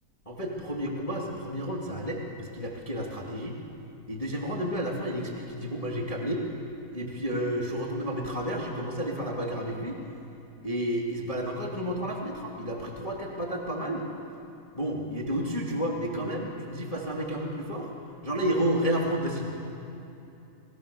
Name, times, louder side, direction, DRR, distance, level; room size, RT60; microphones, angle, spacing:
voice 1, 0.2-3.6 4.1-6.4 6.9-10.0 10.6-14.1 14.7-17.9 18.2-19.6, equal, 20° left, -1 dB, 0.8 m, -31 dB
28.0 x 20.5 x 7.0 m, 2.8 s
omnidirectional pair, 5.4 m